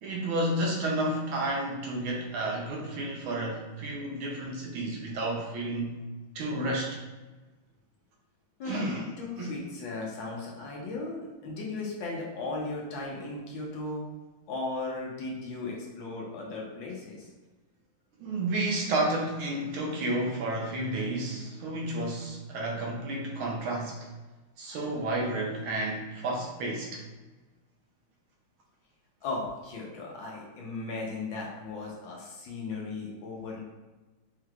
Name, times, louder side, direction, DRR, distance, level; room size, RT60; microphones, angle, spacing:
voice 1, 0.0-6.0 6.3-7.0 8.6-9.0 9.4-9.5 18.2-24.0 24.6-27.0, right 1 dB, 80° right, -1 dB, 1.6 m, -31 dB
voice 2, 8.6-14.0 14.5-17.3 29.2-33.6, left 3 dB, 70° left, -3 dB, 1.6 m, -36 dB
5.5 x 3.1 x 2.4 m, 1.2 s
omnidirectional pair, 2.3 m